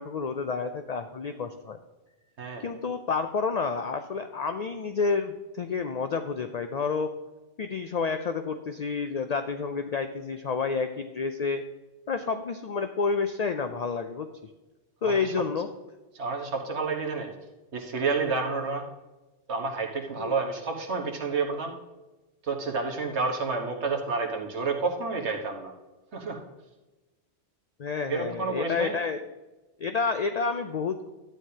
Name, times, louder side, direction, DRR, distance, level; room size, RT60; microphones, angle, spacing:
voice 1, 0.0-1.8 2.6-7.1 7.6-11.6 12.1-14.3 15.0-15.7 20.2-20.3 27.8-29.2 29.8-31.1, left 5 dB, 50° left, 7 dB, 0.5 m, -29 dB
voice 2, 2.4-2.7 15.0-15.3 16.1-17.3 17.7-18.8 19.5-21.7 22.4-25.7 26.1-26.4 28.1-28.9, right 4 dB, 85° right, 2 dB, 1.5 m, -30 dB
12.0 x 9.3 x 2.8 m, 1.1 s
omnidirectional pair, 1.1 m